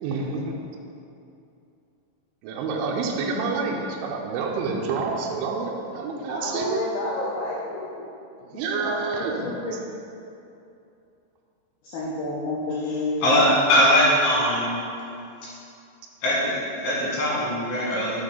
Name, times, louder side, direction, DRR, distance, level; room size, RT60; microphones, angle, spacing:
voice 1, 0.0-0.6 2.4-6.8 8.4-9.6, right 4 dB, 80° right, 0 dB, 3.0 m, -28 dB
voice 2, 6.1-8.1 8.5-8.9 9.6-9.8 11.9-13.2, left 2 dB, 75° left, -7 dB, 2.2 m, -30 dB
voice 3, 13.2-14.8 16.2-18.2, equal, 60° left, -7 dB, 3.4 m, -21 dB
7.0 x 5.6 x 5.1 m, 2.7 s
omnidirectional pair, 5.6 m